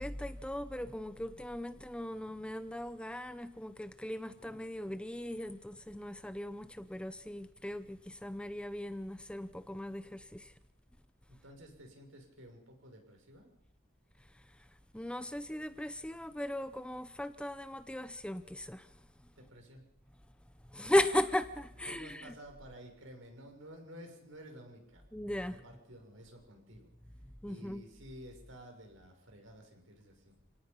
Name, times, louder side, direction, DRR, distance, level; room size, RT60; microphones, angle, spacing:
voice 1, 0.0-10.5 14.2-14.7 14.9-19.3 20.6-22.3 25.1-25.6 27.4-27.8, left 1 dB, 5° left, 0.7 m, -37 dB
voice 2, 11.3-13.5 19.4-19.8 21.8-25.0 25.5-26.9 27.5-30.3, equal, 75° right, 6.5 m, -52 dB
28.5 x 18.0 x 5.5 m
head